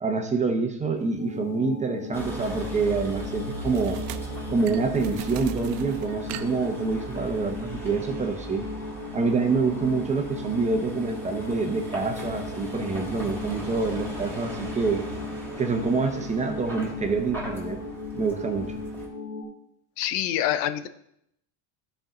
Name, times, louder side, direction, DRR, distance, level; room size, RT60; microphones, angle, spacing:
voice 1, 0.0-4.0 4.5-8.6 9.1-15.0 15.6-17.8 18.1-18.8, right 4 dB, 15° right, 4 dB, 0.6 m, -26 dB
sound 1, 1.2-19.4, left 3 dB, 35° left, 1.3 m, -37 dB
sound 2, 1.6-1.8 3.7-7.4, right 12 dB, 75° right, 0.7 m, -41 dB
Vehicle, 2.1-19.1, right 1 dB, 5° left, 1.7 m, -39 dB
voice 2, 20.0-20.9, left 11 dB, 75° left, 12 dB, 0.7 m, -26 dB
12.5 x 4.5 x 3.8 m, 0.77 s
cardioid pair, 150°, 48 cm